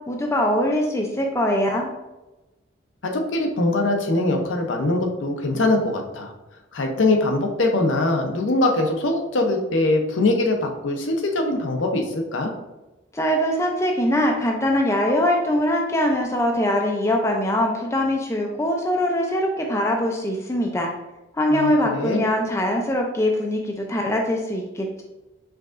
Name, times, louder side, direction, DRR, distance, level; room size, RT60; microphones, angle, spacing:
voice 1, 0.1-1.9 13.1-20.9 21.4-25.0, left 1 dB, 15° left, 1 dB, 0.4 m, -22 dB
voice 2, 3.0-6.3 6.7-12.5 21.5-22.2, left 2 dB, 70° left, 3 dB, 0.6 m, -22 dB
4.6 x 3.5 x 2.5 m, 1.0 s
head